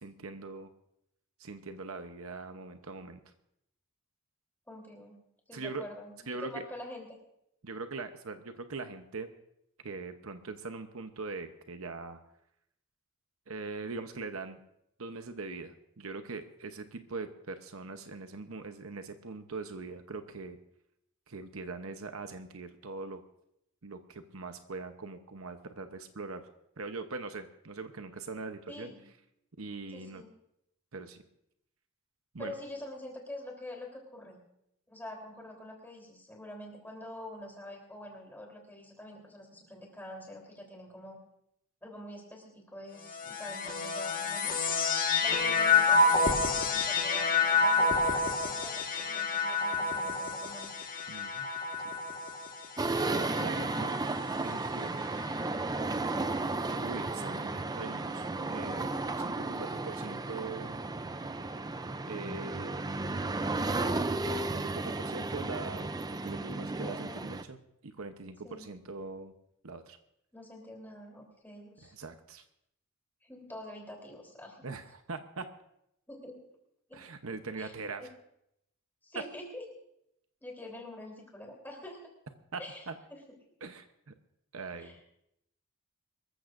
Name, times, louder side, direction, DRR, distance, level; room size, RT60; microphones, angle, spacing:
voice 1, 0.0-0.7 1.4-3.2 5.5-5.9 6.3-6.6 7.6-9.3 9.8-12.2 13.5-14.6 15.0-20.6 21.3-23.2 23.8-26.4 26.8-28.9 29.6-30.2 30.9-31.2 32.3-32.5 51.1-51.5 53.1-54.0 54.4-55.0 56.8-58.9 59.2-60.8 62.0-63.0 63.8-65.9 66.2-67.6 67.8-69.3 69.6-70.0 71.8-72.4 74.6-75.4 76.9-78.0 82.5-82.6 82.9-83.0 83.6-83.9 84.5-85.0, right 3 dB, 65° right, 7 dB, 0.9 m, -41 dB
voice 2, 4.7-5.2 5.5-7.2 28.7-29.0 29.9-30.3 32.4-34.4 34.9-41.2 41.8-44.5 45.2-50.7 66.8-67.2 68.4-68.7 70.3-71.9 73.2-74.7 76.1-76.4 76.9-77.0 77.6-77.7 78.0-78.1 79.0-79.7 80.4-82.1 82.6-83.4 84.8-85.0, left 1 dB, 10° left, 0 dB, 3.5 m, -46 dB
sound 1, 43.0-54.5 55.3-56.0, left 4 dB, 40° left, 1.5 m, -29 dB
sound 2, 52.8-67.4, right 3 dB, 15° right, 0.5 m, -34 dB
24.5 x 14.0 x 2.6 m, 0.78 s
head